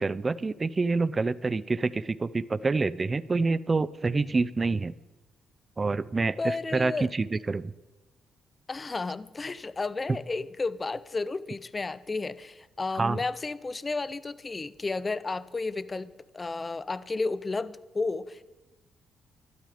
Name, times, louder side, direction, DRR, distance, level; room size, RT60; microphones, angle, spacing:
voice 1, 0.0-4.9 5.8-7.7 13.0-13.2, right 3 dB, 25° right, 18 dB, 0.4 m, -27 dB
voice 2, 6.4-7.1 8.7-18.4, left 3 dB, 25° left, 17 dB, 0.5 m, -32 dB
12.5 x 12.0 x 5.0 m, 1.1 s
cardioid pair, 105°, 0 cm